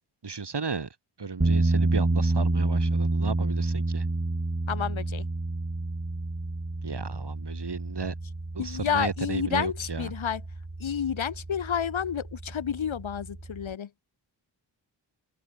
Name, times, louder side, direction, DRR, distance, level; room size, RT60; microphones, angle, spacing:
voice 1, 0.2-0.9 1.2-4.1 6.8-8.1 8.5-10.1, right 5 dB, 60° right, 5.4 m, -34 dB
sound 1, 1.4-13.7, right 2 dB, 30° right, 5.6 m, -29 dB
voice 2, 4.7-5.3 8.6-10.4 10.8-13.9, left 8 dB, 90° left, 2.6 m, -30 dB
open air
cardioid pair, 40°, 46 cm